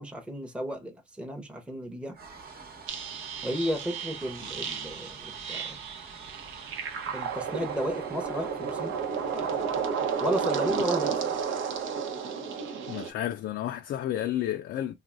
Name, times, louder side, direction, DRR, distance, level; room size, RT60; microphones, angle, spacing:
voice 1, 0.0-2.2 3.4-5.8 7.1-8.9 9.3-9.8 10.2-11.4, equal, 5° right, 0.7 m, -33 dB
sound 1, 2.1-12.4, right 5 dB, 50° right, 1.0 m, -49 dB
sound 2, 2.9-13.1, right 6 dB, 85° right, 0.8 m, -32 dB
voice 2, 12.9-14.9, left 12 dB, 65° left, 0.4 m, -31 dB
3.3 x 2.6 x 2.4 m
cardioid pair, 90°, 20 cm